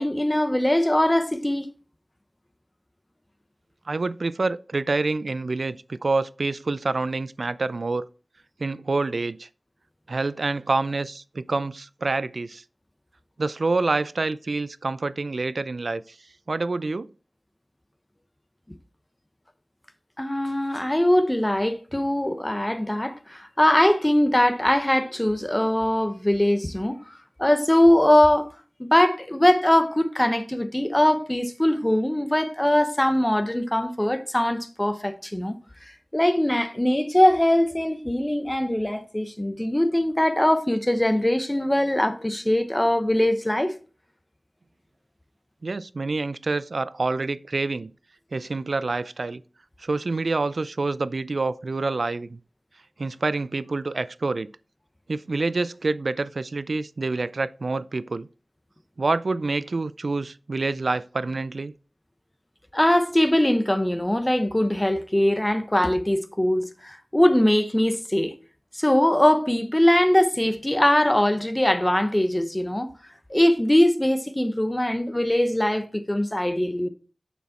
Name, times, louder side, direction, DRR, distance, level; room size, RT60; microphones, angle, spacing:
voice 1, 0.0-1.7 20.2-27.1 27.4-28.5 28.8-43.8 62.7-68.3 68.7-72.9 73.3-76.9, left 1 dB, 20° left, 0.9 m, -21 dB
voice 2, 3.9-8.1 8.6-9.5 10.1-12.6 13.4-16.0 16.5-17.1 45.6-47.9 48.3-49.4 49.8-52.4 53.0-54.5 55.1-58.3 59.0-61.7, right 3 dB, 80° right, 0.3 m, -27 dB
7.1 x 6.2 x 4.2 m
wide cardioid pair, 60°, 0 cm